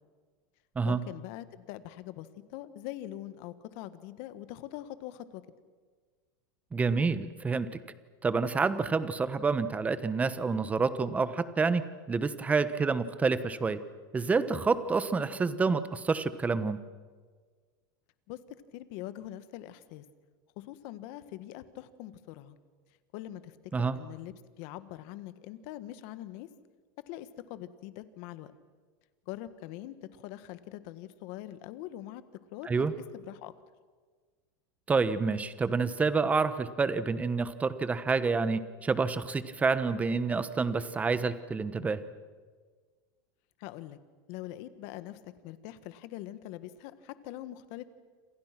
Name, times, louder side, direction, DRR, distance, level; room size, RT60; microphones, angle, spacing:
voice 1, 0.8-5.4 18.3-18.4 18.7-20.0 20.6-22.6 23.1-26.5 27.1-28.5 29.3-32.2 32.5-32.8 33.1-33.5 43.6-44.0 44.3-47.8, left 14 dB, 55° left, 13 dB, 1.7 m, -43 dB
voice 2, 6.7-7.7 8.2-11.8 12.1-13.8 14.1-16.8 23.7-24.0 32.7-32.9 34.9-42.0, right 4 dB, 15° right, 13 dB, 1.2 m, -28 dB
28.0 x 27.0 x 6.1 m, 1.5 s
supercardioid pair, 145°, 11 cm